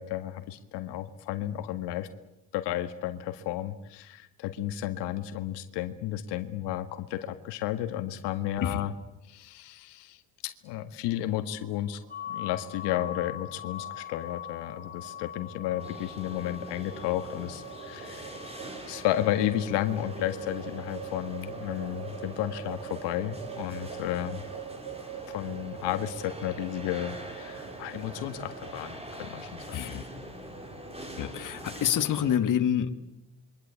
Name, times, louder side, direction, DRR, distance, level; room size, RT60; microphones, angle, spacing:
voice 1, 0.0-2.1 2.5-8.9 9.3-12.0 12.3-18.3 18.9-24.4 25.3-29.8, left 13 dB, 85° left, 8 dB, 1.9 m, -33 dB
sound 1, 11.1-28.9, right 11 dB, 70° right, 2.9 m, -45 dB
sound 2, 12.1-23.8, left 12 dB, 20° left, 5.5 m, -44 dB
sound 3, 15.8-32.4, right 1 dB, 15° right, 4.1 m, -44 dB
voice 2, 29.7-30.0 31.2-32.9, left 9 dB, 50° left, 7 dB, 2.0 m, -27 dB
27.5 x 23.5 x 8.5 m, 0.90 s
cardioid pair, 115°, 40 cm